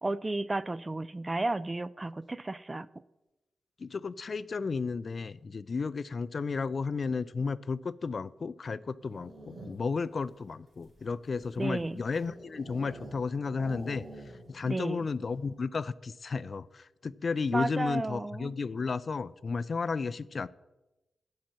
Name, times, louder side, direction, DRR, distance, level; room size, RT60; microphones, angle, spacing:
voice 1, 0.0-2.9 11.6-12.0 14.6-15.0 17.5-18.5, right 2 dB, 25° right, 0.3 m, -33 dB
voice 2, 3.8-14.0 14.5-20.5, left 4 dB, 50° left, 0.3 m, -33 dB
sound 1, 9.0-10.0 10.7-13.2 13.5-14.6 14.9-15.0 15.3-15.6, right 2 dB, 55° right, 3.4 m, -47 dB
7.6 x 5.6 x 7.3 m
cardioid pair, 65°, 0 cm